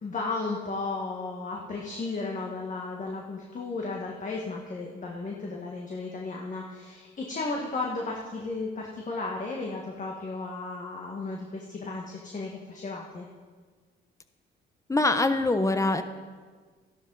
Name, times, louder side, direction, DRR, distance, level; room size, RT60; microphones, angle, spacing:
voice 1, 0.0-13.3, left 3 dB, 40° left, -1 dB, 1.6 m, -34 dB
voice 2, 14.9-16.0, left 2 dB, 15° left, 9 dB, 0.9 m, -23 dB
13.5 x 11.5 x 4.1 m, 1.5 s
cardioid pair, 90°, 20 cm